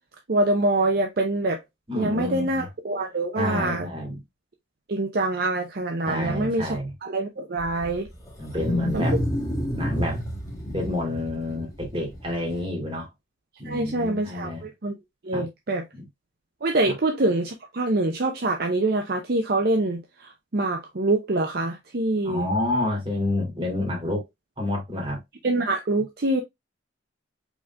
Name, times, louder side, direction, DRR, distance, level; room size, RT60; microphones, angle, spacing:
voice 1, 0.3-1.6 1.9-3.9 4.9-6.7 7.0-8.1 8.9-9.0 13.6-14.5 14.8-14.9 15.2-15.8 16.6-20.0 20.5-22.5 25.4-26.4, right 2 dB, 50° right, 0.6 m, -25 dB
voice 2, 1.9-2.7 3.4-4.2 6.1-6.9 8.4-9.2 9.7-10.2 10.7-13.1 13.6-14.7 15.3-15.5 15.9-16.1 16.9-17.0 22.2-24.3 24.6-25.2, left 2 dB, 25° right, 2.5 m, -29 dB
Wild animals, 7.6-12.6, equal, 20° left, 1.8 m, -29 dB
5.2 x 3.6 x 2.2 m
head